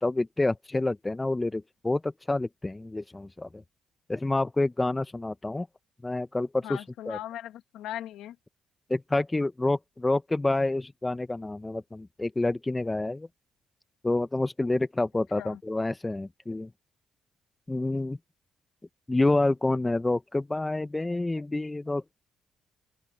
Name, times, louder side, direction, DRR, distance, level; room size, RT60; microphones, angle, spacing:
voice 1, 0.0-3.6 4.1-5.7 6.0-6.8 7.1-7.2 8.9-13.3 14.0-16.7 17.7-18.2 19.1-22.1, left 2 dB, 15° left, 0.7 m, -28 dB
voice 2, 6.6-8.4 15.3-15.6, left 12 dB, 85° left, 1.7 m, -39 dB
open air
cardioid pair, 90°, 0 cm